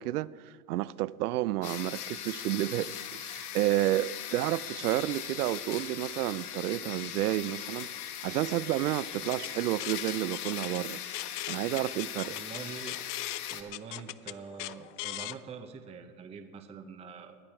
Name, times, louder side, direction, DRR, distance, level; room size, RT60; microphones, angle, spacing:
voice 1, 0.0-7.9 8.2-11.0 11.5-12.4, right 16 dB, 90° right, 0.5 m, -31 dB
sound 1, 1.6-13.6, left 10 dB, 80° left, 1.6 m, -39 dB
sound 2, 9.1-15.4, left 17 dB, 55° left, 0.5 m, -40 dB
voice 2, 12.3-13.0 13.5-17.4, right 6 dB, 15° right, 0.7 m, -44 dB
21.0 x 12.0 x 4.4 m
supercardioid pair, 135°, 44 cm